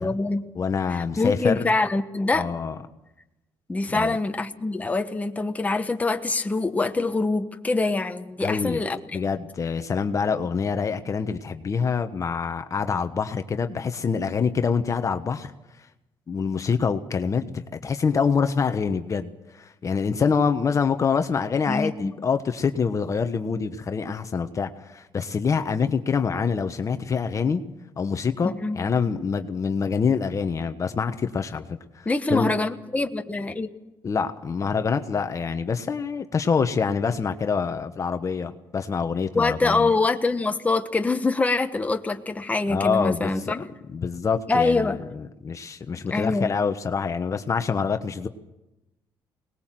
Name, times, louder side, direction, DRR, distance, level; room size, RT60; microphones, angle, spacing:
voice 1, 0.0-0.5 0.9-2.5 3.7-9.0 21.7-22.1 28.4-28.9 32.0-33.7 39.3-43.7 44.5-45.0 46.1-46.5, left 3 dB, 15° left, 6 dB, 1.3 m, -24 dB
voice 2, 0.6-1.7 2.3-2.7 3.9-4.2 8.4-8.8 9.1-15.5 16.3-27.6 28.0-32.5 34.0-39.9 42.7-43.6 43.9-48.3, left 5 dB, 35° left, 8 dB, 1.2 m, -26 dB
22.0 x 19.5 x 7.7 m, 0.97 s
cardioid pair, 100°, 9 cm